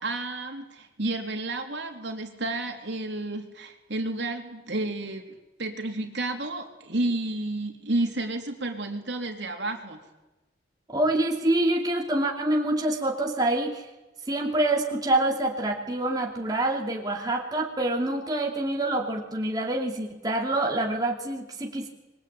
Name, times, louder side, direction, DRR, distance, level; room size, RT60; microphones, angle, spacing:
voice 1, 0.0-10.0, right 2 dB, 65° right, 4 dB, 3.6 m, -31 dB
voice 2, 10.9-13.9 14.3-21.9, right 1 dB, 20° right, 0 dB, 2.6 m, -26 dB
26.0 x 23.0 x 8.8 m, 1.0 s
head